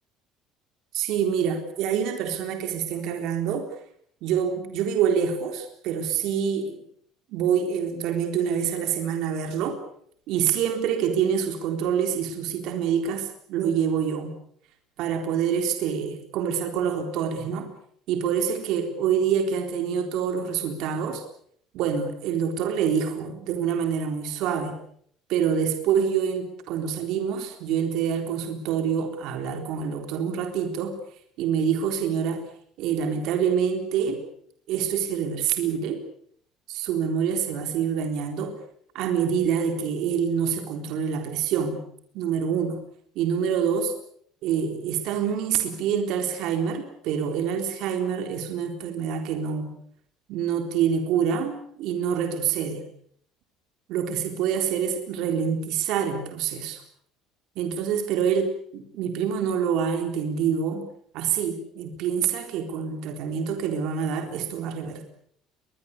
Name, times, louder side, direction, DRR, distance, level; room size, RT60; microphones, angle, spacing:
voice 1, 0.9-3.7 4.2-6.8 7.3-9.8 10.3-14.4 15.0-17.7 18.1-21.2 21.7-24.8 25.3-31.0 31.4-32.4 32.8-34.2 34.7-36.0 36.7-38.6 38.9-41.8 42.1-42.8 43.2-43.9 44.4-49.7 50.3-52.8 53.9-56.8 57.6-60.9 61.1-65.1, right 7 dB, 55° right, 5 dB, 3.9 m, -26 dB
23.0 x 21.0 x 8.4 m, 0.64 s
cardioid pair, 175°, 0 cm